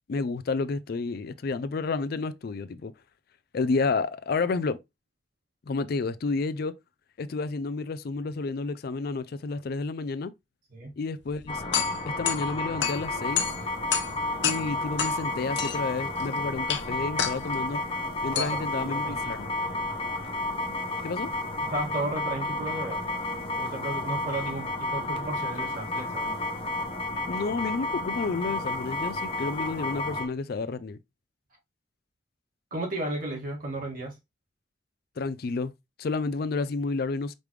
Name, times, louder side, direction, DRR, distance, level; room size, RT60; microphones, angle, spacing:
voice 1, 0.1-2.9 3.5-4.8 5.7-6.8 7.2-10.3 11.0-11.6 12.2-13.5 14.4-17.8 18.2-19.5 21.0-21.3 27.3-31.0 35.2-35.7 36.0-37.3, left 4 dB, 55° left, 0.4 m, -30 dB
sound 1, 11.2-20.4, left 8 dB, 70° left, 0.9 m, -33 dB
sound 2, 11.5-30.3, left 2 dB, 30° left, 0.9 m, -31 dB
voice 2, 18.3-19.3 21.6-23.0 23.5-26.4 32.7-34.2, right 1 dB, 50° right, 2.0 m, -34 dB
5.1 x 3.3 x 3.1 m
head